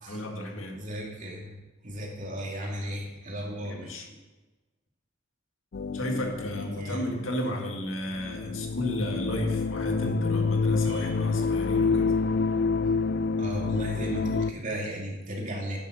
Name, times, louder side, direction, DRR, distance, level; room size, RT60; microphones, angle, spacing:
voice 1, 0.1-0.8 3.6-4.1 5.9-12.1, left 1 dB, 80° left, 2 dB, 1.9 m, -33 dB
voice 2, 0.7-1.6 1.8-3.9 6.8-7.0 10.9-11.1 13.4-15.8, equal, 40° right, -1 dB, 2.6 m, -35 dB
sound 1, 5.7-14.5, left 4 dB, 55° left, 0.4 m, -28 dB
9.9 x 8.3 x 6.3 m, 1.2 s
head